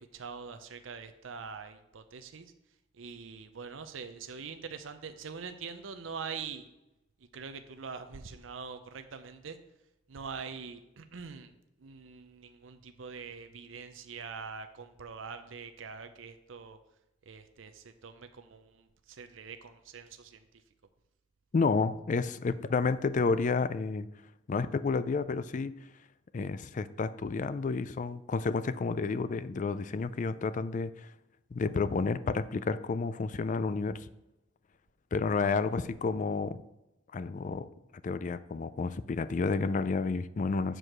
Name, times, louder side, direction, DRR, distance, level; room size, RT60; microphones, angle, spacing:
voice 1, 0.0-2.5 2.9-6.7 7.3-9.6 10.1-11.5 11.8-16.8 17.3-20.4, right 5 dB, 85° right, 9 dB, 0.6 m, -44 dB
voice 2, 21.5-24.1 24.5-25.7 26.3-30.9 31.5-34.1 35.1-36.6 37.1-37.7 38.0-40.8, left 4 dB, 40° left, 15 dB, 0.4 m, -30 dB
7.6 x 4.7 x 6.5 m, 0.92 s
head